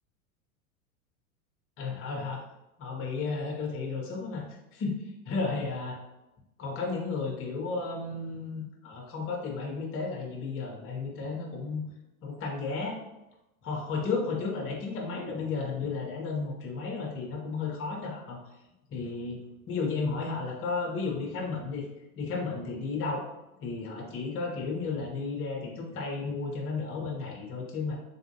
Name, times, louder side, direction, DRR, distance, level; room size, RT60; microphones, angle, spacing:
voice 1, 1.8-2.4 2.8-4.4 4.7-6.0 6.6-11.9 12.2-13.0 13.6-18.4 18.9-21.8 22.1-23.2 23.6-28.0, left 4 dB, 30° left, -1 dB, 0.9 m, -33 dB
3.4 x 2.6 x 2.7 m, 0.95 s
hypercardioid pair, 100°, 44 cm